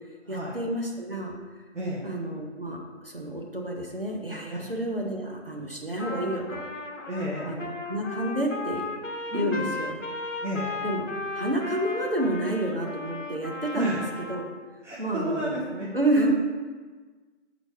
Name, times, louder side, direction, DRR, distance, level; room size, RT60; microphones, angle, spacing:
voice 1, 0.3-1.4 2.0-6.6 7.4-8.8 9.3-9.9 10.8-11.1 11.3-14.0 14.3-14.5 15.0-15.6 15.9-16.3, right 1 dB, 50° right, 0 dB, 0.9 m, -29 dB
Trumpet, 6.0-14.5, left 3 dB, 90° left, 0.9 m, -36 dB
voice 2, 7.1-7.6 9.3-9.6 10.4-10.8 13.7-14.0 14.8-15.9 16.1-16.3, right 1 dB, 70° right, -6 dB, 1.3 m, -31 dB
7.4 x 4.0 x 3.6 m, 1.4 s
figure-of-eight pair, 180°, 37 cm